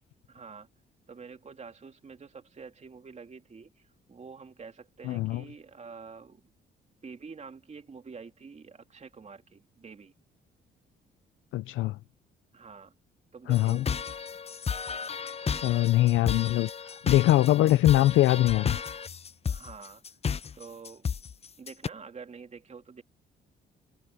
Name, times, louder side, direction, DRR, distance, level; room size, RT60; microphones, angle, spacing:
voice 1, 0.3-0.7 1.1-6.4 7.0-10.1 12.5-12.9 13.3-14.1 19.4-20.2 20.5-21.1 21.6-23.0, right 5 dB, 35° right, 2.9 m, -47 dB
voice 2, 5.0-5.4 11.5-12.0 13.5-13.9 15.6-18.8, left 15 dB, 85° left, 0.6 m, -23 dB
sound 1, 13.5-21.9, left 6 dB, 30° left, 0.7 m, -33 dB
cardioid pair, 90°, 20 cm